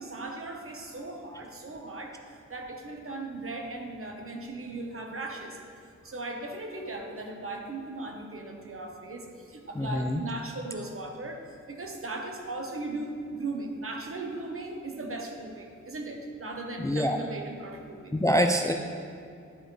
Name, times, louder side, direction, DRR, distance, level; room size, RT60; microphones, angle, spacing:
voice 1, 0.0-2.2 2.5-5.6 6.0-18.1, right 2 dB, 45° right, 2 dB, 1.0 m, -38 dB
voice 2, 9.8-10.2 16.8-17.2 18.1-18.7, equal, 10° left, 4 dB, 0.3 m, -25 dB
11.0 x 5.0 x 3.2 m, 2.4 s
wide cardioid pair, 75°, 30 cm